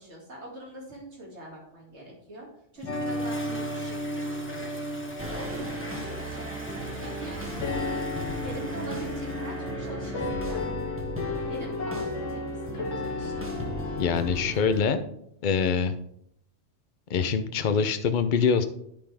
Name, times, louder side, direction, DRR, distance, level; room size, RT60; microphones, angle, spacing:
voice 1, 0.0-2.5 2.7-4.7 5.0-10.6 11.5-12.4 12.7-13.5, right 1 dB, 70° right, -3 dB, 2.6 m, -43 dB
Toilet flush, 2.8-9.6, left 2 dB, 10° left, 1.1 m, -44 dB
sound 1, 2.9-14.5, left 2 dB, 75° left, 1.4 m, -34 dB
sound 2, 5.2-14.9, right 1 dB, 10° right, 1.4 m, -36 dB
voice 2, 14.0-15.0 15.4-15.9 17.1-18.6, left 6 dB, 50° left, 9 dB, 0.7 m, -24 dB
10.5 x 5.6 x 3.4 m, 0.72 s
omnidirectional pair, 1.2 m